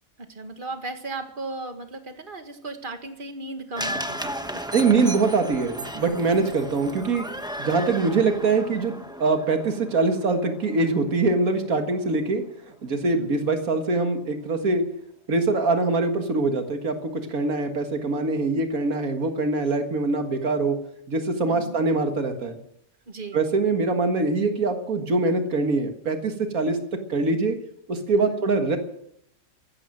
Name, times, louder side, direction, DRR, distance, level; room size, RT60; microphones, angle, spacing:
voice 1, 0.2-5.0 13.0-13.3 21.5-21.8 23.1-23.4 28.2-28.5, right 3 dB, 40° right, 6 dB, 1.9 m, -36 dB
sound 1, 3.8-12.1 12.4-12.5, equal, 5° right, 0.9 m, -35 dB
voice 2, 4.7-7.2 7.6-8.9 9.2-12.4 12.8-14.8 15.3-20.8 21.1-22.6 23.3-26.8 27.1-27.6 27.9-28.8, right 3 dB, 90° right, 5 dB, 2.2 m, -23 dB
15.0 x 13.0 x 7.6 m, 0.73 s
omnidirectional pair, 1.4 m